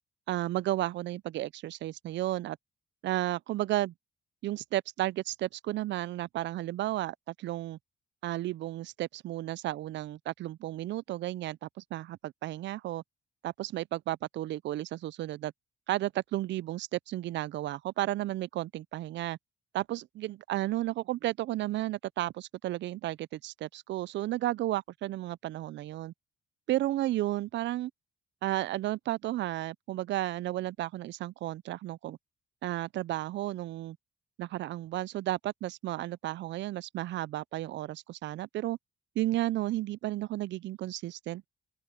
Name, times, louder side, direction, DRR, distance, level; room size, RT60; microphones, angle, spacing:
voice 1, 0.3-2.6 3.0-3.9 4.4-7.8 8.2-13.0 13.4-15.5 15.9-19.4 19.7-26.1 26.7-27.9 28.4-32.2 32.6-34.0 34.4-38.8 39.2-41.5, right 15 dB, 65° right, 0.4 m, -33 dB
open air
cardioid pair, 90°, 20 cm